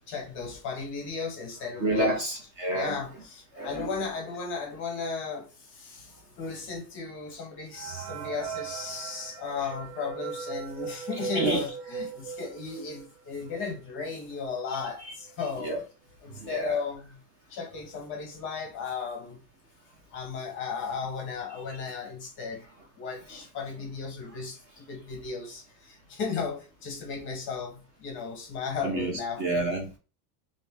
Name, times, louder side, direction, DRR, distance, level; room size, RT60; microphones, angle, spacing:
voice 1, 0.1-2.2 2.7-15.8 16.2-17.1 17.5-19.4 20.1-22.6 23.0-29.4, left 5 dB, 25° left, 0.7 m, -35 dB
voice 2, 1.8-3.0 3.5-3.9 11.3-11.6 15.0-15.1 15.6-15.8 16.3-16.8 23.3-23.4 28.8-29.9, right 1 dB, 30° right, 0.6 m, -29 dB
sound 1, 7.7-13.2 13.6-13.7 13.9-14.1 14.8-14.9 15.3-15.6, right 6 dB, 70° right, 0.6 m, -39 dB
3.3 x 2.7 x 3.4 m
supercardioid pair, 175°, 48 cm